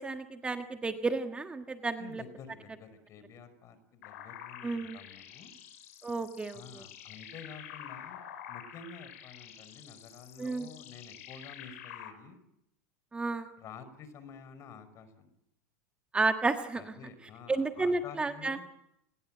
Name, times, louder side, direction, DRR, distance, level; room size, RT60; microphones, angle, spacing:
voice 1, 0.0-2.2 4.6-5.0 6.0-6.8 10.4-10.7 13.1-13.5 16.1-16.8 17.5-18.6, right 3 dB, 15° right, 6 dB, 1.5 m, -32 dB
voice 2, 2.0-5.5 6.5-12.4 13.6-15.3 16.7-18.7, left 5 dB, 40° left, 13 dB, 5.4 m, -50 dB
sound 1, 4.0-12.1, left 10 dB, 70° left, 6.4 m, -48 dB
29.5 x 21.0 x 9.0 m, 0.81 s
supercardioid pair, 120°, 8 cm